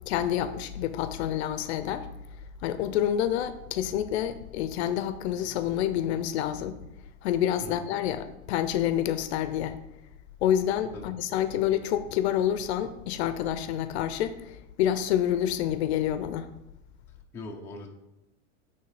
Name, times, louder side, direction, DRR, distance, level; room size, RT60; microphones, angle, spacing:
voice 1, 0.1-2.1 2.6-6.8 7.2-9.8 10.4-16.5, left 10 dB, 60° left, 0.6 m, -28 dB
voice 2, 17.3-17.9, left 2 dB, 5° left, 0.5 m, -41 dB
8.9 x 3.3 x 4.7 m
supercardioid pair, 155°, 38 cm